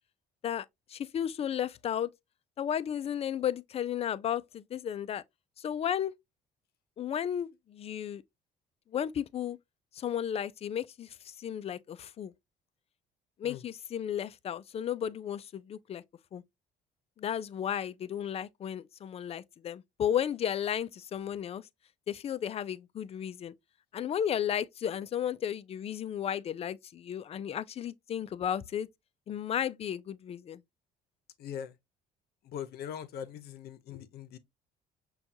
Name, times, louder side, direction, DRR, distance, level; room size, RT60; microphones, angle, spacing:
voice 1, 0.4-2.1 2.6-5.2 5.6-6.1 7.0-8.2 8.9-9.6 9.9-12.3 13.4-16.0 16.3-16.4 17.2-21.6 22.1-23.5 23.9-28.9 29.3-30.6, left 9 dB, 35° left, 0.4 m, -34 dB
voice 2, 31.4-31.7 32.4-34.4, left 9 dB, 70° left, 0.7 m, -41 dB
5.8 x 2.3 x 2.6 m
cardioid pair, 110°, 17 cm